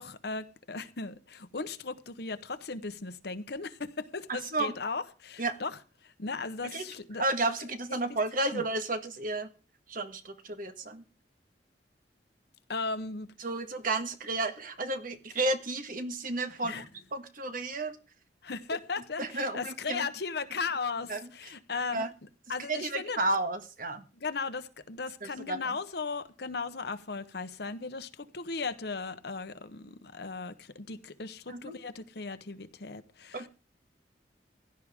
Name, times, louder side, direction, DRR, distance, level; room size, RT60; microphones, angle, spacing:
voice 1, 0.0-7.2 7.9-8.0 8.5-8.6 12.7-13.3 16.6-16.8 18.4-22.1 22.5-23.3 24.2-33.5, left 4 dB, 65° left, 1.1 m, -37 dB
voice 2, 4.3-4.7 5.4-5.5 6.6-6.9 7.2-9.5 9.9-11.0 13.4-18.0 19.2-20.1 21.1-21.2 21.9-22.1 22.7-24.0 25.2-25.8 31.5-31.8 33.3-33.5, right 2 dB, 55° right, 1.6 m, -32 dB
16.0 x 11.5 x 3.7 m
head